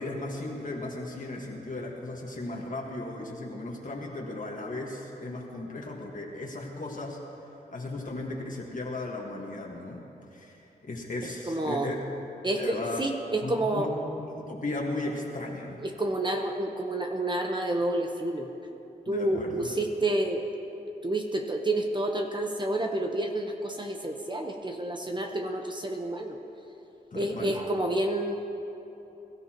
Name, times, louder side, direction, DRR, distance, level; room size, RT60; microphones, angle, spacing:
voice 1, 0.0-7.2 7.7-10.1 10.3-10.6 10.8-12.0 12.6-13.0 13.4-13.9 14.2-15.8 19.1-19.7 27.1-27.6, left 2 dB, 50° left, -1 dB, 1.6 m, -36 dB
voice 2, 11.2-11.9 12.4-13.9 15.8-18.5 19.1-20.4 21.0-26.4 27.1-28.3, right 1 dB, 25° right, 3 dB, 1.0 m, -29 dB
21.5 x 13.5 x 3.0 m, 3.0 s
wide cardioid pair, 75°, 17 cm